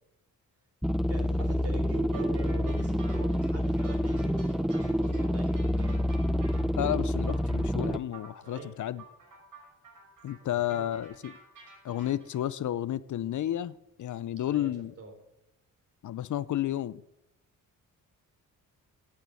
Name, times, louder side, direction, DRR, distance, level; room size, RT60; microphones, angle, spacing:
sound 1, 0.8-8.0, equal, ahead, 0.6 m, -28 dB
voice 1, 1.1-6.0 8.4-8.8 10.4-10.9 14.5-14.7 15.0-15.1, right 2 dB, 45° right, 4.0 m, -44 dB
sound 2, 2.1-12.4, right 4 dB, 65° right, 5.9 m, -52 dB
voice 2, 6.8-9.0 10.2-11.4 11.8-14.9 16.0-17.0, left 12 dB, 60° left, 0.5 m, -32 dB
10.5 x 9.9 x 9.0 m
cardioid pair, 105°, 34 cm